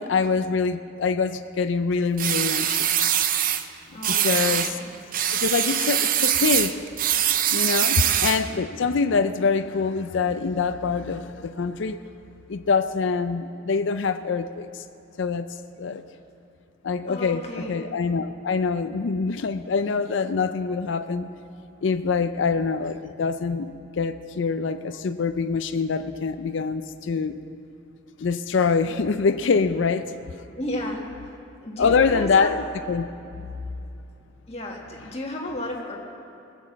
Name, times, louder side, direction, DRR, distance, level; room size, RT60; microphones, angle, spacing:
voice 1, 0.0-3.0 4.1-4.8 5.3-6.8 7.5-12.0 12.5-14.8 15.2-15.5 15.8-16.0 16.8-21.3 21.8-27.4 28.2-30.4 31.8-33.1 33.3-33.4, left 5 dB, 70° left, 10 dB, 0.4 m, -25 dB
sound 1, 2.2-3.6 4.0-4.7 5.1-8.5, right 10 dB, 45° right, 0.5 m, -23 dB
voice 2, 3.9-4.9 7.8-8.2 17.1-17.8 30.5-31.3 31.6-32.5 34.5-36.0, left 1 dB, 30° left, -1 dB, 1.6 m, -33 dB
19.0 x 7.1 x 7.3 m, 2.9 s
head